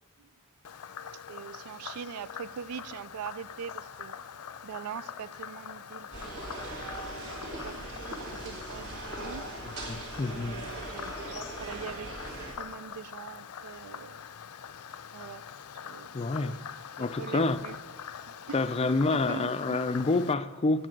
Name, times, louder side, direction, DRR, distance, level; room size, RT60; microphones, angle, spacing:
Frog, 0.6-20.3, left 7 dB, 90° left, 0.5 m, -44 dB
voice 1, 1.3-4.1 4.6-6.8 7.5-9.5 10.3-12.1 12.6-14.2 15.1-15.4 15.8-16.1 16.4-16.6 17.0-17.8 18.5-18.6 19.1-19.8, right 8 dB, 85° right, 0.4 m, -42 dB
sound 1, 6.1-12.5, right 1 dB, 70° right, 2.3 m, -40 dB
voice 2, 9.9-10.6 16.1-16.6 17.0-17.6 18.5-20.9, left 3 dB, 25° left, 0.4 m, -28 dB
7.6 x 6.7 x 7.5 m
head